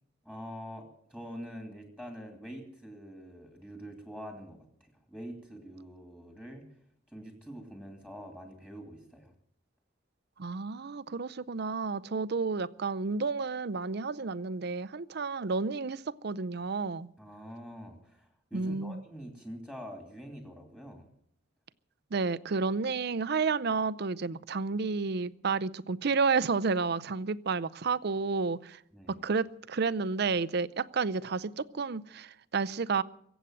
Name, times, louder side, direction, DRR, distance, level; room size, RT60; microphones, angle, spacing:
voice 1, 0.2-6.6 7.1-9.3 17.2-21.1 28.9-29.2, equal, 5° left, 2.5 m, -45 dB
voice 2, 10.4-17.1 18.5-19.0 22.1-28.8 29.1-33.0, right 4 dB, 60° right, 0.6 m, -31 dB
23.5 x 8.1 x 7.6 m
head